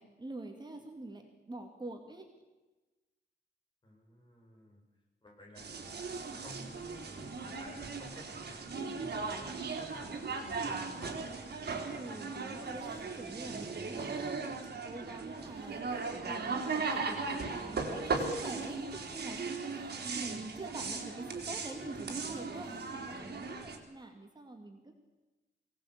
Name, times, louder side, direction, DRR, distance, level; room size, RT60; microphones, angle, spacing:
voice 1, 0.0-2.3 11.6-14.5 14.8-24.9, right 2 dB, 25° right, 3 dB, 2.5 m, -46 dB
voice 2, 3.8-4.8 5.2-11.2, equal, 25° left, 0 dB, 7.5 m, -53 dB
sound 1, 5.6-23.8, right 4 dB, 65° right, 3.7 m, -38 dB
23.5 x 18.5 x 8.4 m, 1.1 s
wide cardioid pair, 135°, 18 cm